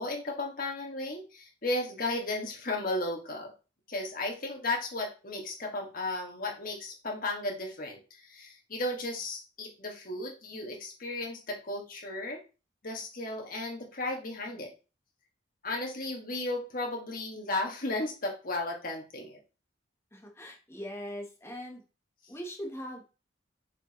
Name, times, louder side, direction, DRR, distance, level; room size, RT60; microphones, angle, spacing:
voice 1, 0.0-3.5 3.9-12.4 12.8-14.7 15.6-19.4, left 2 dB, 50° left, 0 dB, 1.8 m, -34 dB
voice 2, 20.1-21.8 22.3-23.1, equal, 15° left, 2 dB, 1.1 m, -41 dB
6.6 x 4.8 x 3.1 m, 0.31 s
head